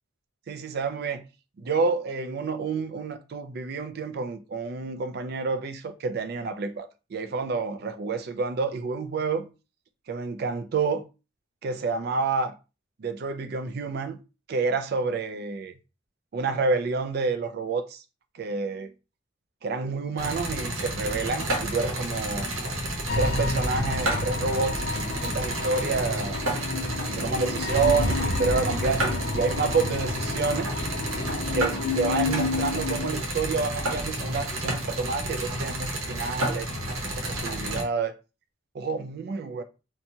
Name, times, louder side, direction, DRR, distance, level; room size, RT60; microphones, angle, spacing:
voice 1, 0.5-1.2 1.6-9.5 10.1-11.0 11.6-12.5 13.0-14.2 14.5-15.7 16.3-18.0 18.3-18.9 19.6-22.5 23.1-26.4 27.1-30.8 31.5-36.7 37.0-38.1 38.7-39.6, right 4 dB, 50° right, 0.3 m, -29 dB
sound 1, 20.2-37.8, right 1 dB, 80° right, 0.9 m, -31 dB
sound 2, 23.1-33.1, left 3 dB, 45° left, 0.3 m, -30 dB
2.8 x 2.2 x 2.7 m
head